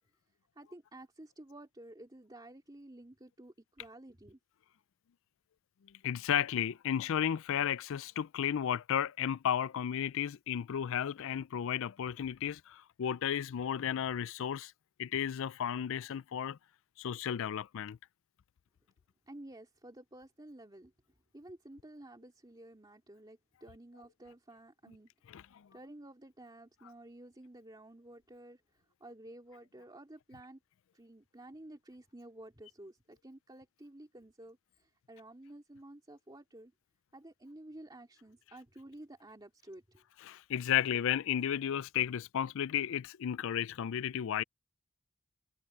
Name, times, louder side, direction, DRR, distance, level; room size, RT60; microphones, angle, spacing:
voice 1, 0.5-4.4 19.2-20.9 21.3-25.1 25.4-30.6 30.9-36.7 37.1-40.0, right 1 dB, 20° right, 2.5 m, -52 dB
voice 2, 6.0-14.7 15.0-16.6 17.0-18.0 25.3-25.4 40.3-44.4, left 9 dB, 65° left, 0.4 m, -33 dB
head